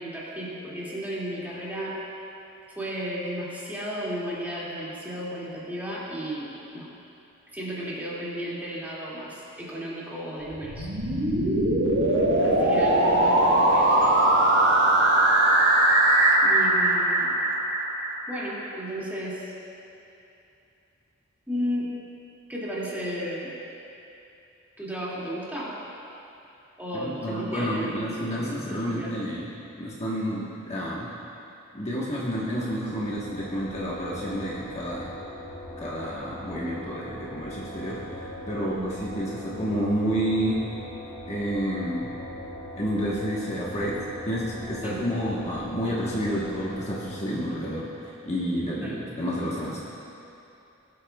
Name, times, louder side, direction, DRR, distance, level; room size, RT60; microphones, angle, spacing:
voice 1, 0.0-2.0 2.8-6.9 7.5-10.9 12.4-14.1 16.4-17.3 18.3-19.5 21.5-21.9 22.5-23.5 24.8-25.7 26.8-29.1 38.6-38.9 44.8-45.0 48.8-49.0, equal, 10° right, -8 dB, 2.2 m, -34 dB
sound 1, 10.5-18.4, right 1 dB, 60° right, 1.3 m, -21 dB
voice 2, 26.9-29.5 29.8-31.1 31.7-35.1 35.8-40.6 41.3-42.1 42.8-44.0 44.2-49.8, equal, 30° left, -6 dB, 1.3 m, -30 dB
sound 2, 32.2-48.1, left 1 dB, 60° left, 2.3 m, -41 dB
20.5 x 8.4 x 2.3 m, 2.8 s
head